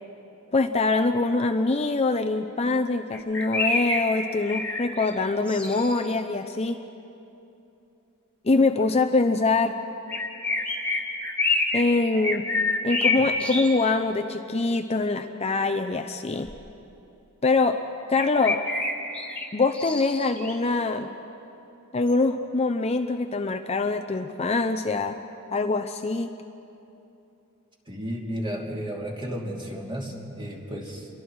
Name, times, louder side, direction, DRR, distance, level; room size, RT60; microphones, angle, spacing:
voice 1, 0.5-6.8 8.4-9.8 11.7-12.5 12.8-16.5 17.4-17.8 18.1-18.6 19.5-21.1 21.9-25.2 25.5-26.3, left 3 dB, 30° left, 6 dB, 0.6 m, -24 dB
sound 1, 3.1-6.1 10.1-11.9 12.1-13.7 16.5-16.6 18.2-20.5 22.1-22.2, left 3 dB, 5° left, 2.4 m, -27 dB
voice 2, 27.9-31.1, equal, 25° right, -1 dB, 2.9 m, -33 dB
28.5 x 23.0 x 4.7 m, 2.9 s
head